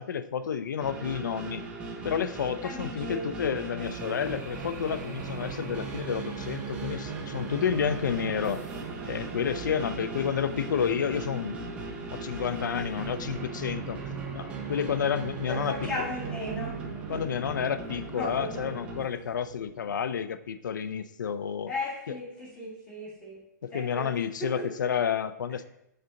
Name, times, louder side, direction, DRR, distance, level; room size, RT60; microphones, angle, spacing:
voice 1, 0.0-1.7 2.0-8.6 9.1-11.6 12.1-14.0 14.3-15.9 17.1-21.7 23.6-25.6, left 7 dB, 90° left, 13 dB, 0.5 m, -30 dB
sound 1, 0.8-19.0, right 4 dB, 10° right, 0.6 m, -38 dB
voice 2, 2.6-3.3 15.4-16.8 17.1-17.2 18.1-18.7 21.7-23.4 23.7-24.1 24.4-24.7, left 1 dB, 10° left, -6 dB, 1.8 m, -36 dB
sound 2, 3.8-20.1, right 4 dB, 80° right, 2.2 m, -44 dB
6.9 x 5.5 x 3.8 m, 0.83 s
hypercardioid pair, 170°, 10 cm